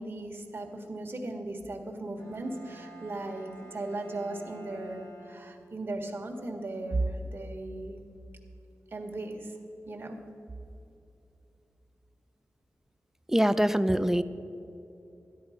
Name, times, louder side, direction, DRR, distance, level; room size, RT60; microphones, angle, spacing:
voice 1, 0.0-8.0 8.9-9.5 9.9-10.2, right 2 dB, 40° right, 1 dB, 1.6 m, -36 dB
Bowed string instrument, 2.2-5.9, right 1 dB, 85° left, 2.8 m, -50 dB
voice 2, 13.3-14.2, equal, 10° right, 12 dB, 0.4 m, -24 dB
13.0 x 10.5 x 5.1 m, 2.8 s
wide cardioid pair, 105°, 5 cm